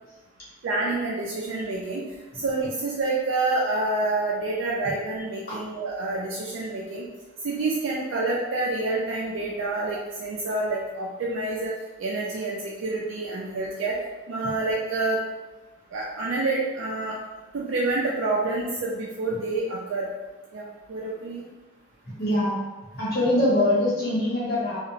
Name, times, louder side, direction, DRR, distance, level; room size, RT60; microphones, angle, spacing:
voice 1, 0.6-2.0 2.4-7.1 7.4-11.7 12.0-14.0 14.3-15.2 15.9-17.2 17.5-20.1 20.5-21.4, right 2 dB, 75° right, -4 dB, 0.4 m, -28 dB
voice 2, 22.2-22.6 22.9-24.8, left 1 dB, 50° left, -8 dB, 0.8 m, -23 dB
2.5 x 2.0 x 2.8 m, 1.2 s
head